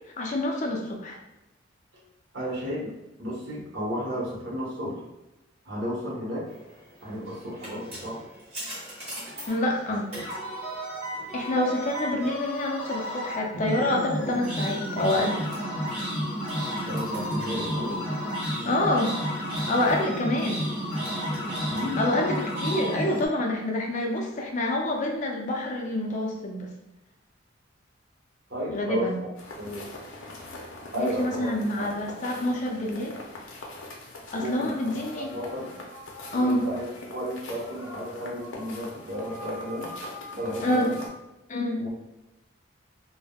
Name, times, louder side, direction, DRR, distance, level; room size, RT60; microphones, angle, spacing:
voice 1, 0.2-1.2 9.5-10.1 11.3-15.5 18.6-19.1 19.7-20.7 22.0-26.7 28.7-29.2 31.0-33.1 34.3-35.3 36.3-36.6 40.6-40.9 41.5-41.8, left 1 dB, 40° left, 1 dB, 0.4 m, -27 dB
voice 2, 2.3-2.9 3.2-4.9 5.6-6.4 7.0-8.2 16.8-18.0 21.7-22.0 28.5-29.3 29.6-29.9 30.9-31.6 34.4-35.7 36.3-36.9 37.1-39.9 40.3-41.0 41.8-41.9, equal, 65° right, -5 dB, 1.0 m, -33 dB
sound 1, 7.0-23.3, equal, 30° right, 1.2 m, -32 dB
sound 2, 29.4-41.1, left 1 dB, 85° left, 0.6 m, -42 dB
3.4 x 2.0 x 2.2 m, 0.98 s
head